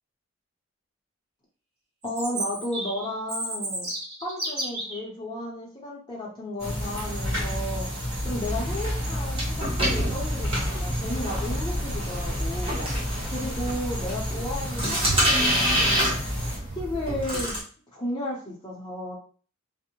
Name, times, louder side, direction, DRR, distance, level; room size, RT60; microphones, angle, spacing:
voice 1, 2.0-3.9 4.2-7.9 8.2-12.8 13.3-16.1 16.8-17.6 17.9-19.1, left 1 dB, 20° left, -4 dB, 0.6 m, -33 dB
Chirp tweet, 2.0-5.0, right 1 dB, 40° right, 1.4 m, -32 dB
sound 1, 6.6-16.6, equal, 70° right, 1.5 m, -30 dB
sound 2, 8.2-17.6, equal, 25° right, 0.9 m, -28 dB
2.6 x 2.0 x 2.8 m, 0.42 s
head